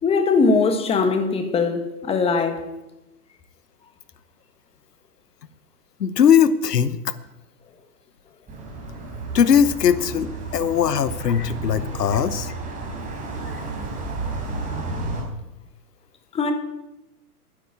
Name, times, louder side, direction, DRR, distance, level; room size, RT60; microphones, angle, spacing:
voice 1, 0.0-2.6 16.3-16.5, left 4 dB, 10° left, 1.4 m, -20 dB
voice 2, 6.0-7.1 9.3-12.5, left 8 dB, 85° left, 1.1 m, -19 dB
sound 1, 8.5-15.2, right 2 dB, 15° right, 4.2 m, -32 dB
12.0 x 10.0 x 8.3 m
hypercardioid pair, 135°, 47 cm